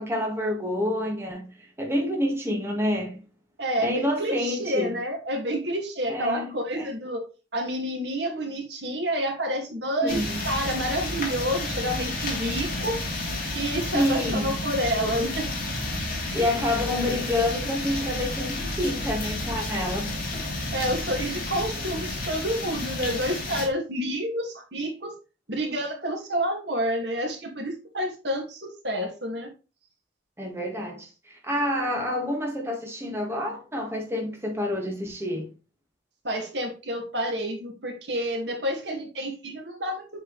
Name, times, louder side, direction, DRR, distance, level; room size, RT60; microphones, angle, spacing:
voice 1, 0.0-3.2 3.8-5.0 6.1-6.9 10.0-10.4 13.9-14.5 16.3-20.4 21.2-21.3 30.4-35.5, left 1 dB, 15° right, 1.7 m, -28 dB
voice 2, 3.6-7.2 7.5-13.0 13.5-15.5 20.7-25.2 25.5-29.5 36.2-40.2, equal, 65° right, 2.1 m, -29 dB
sound 1, 10.1-23.7, left 2 dB, 50° left, 2.6 m, -31 dB
7.9 x 4.7 x 3.2 m
head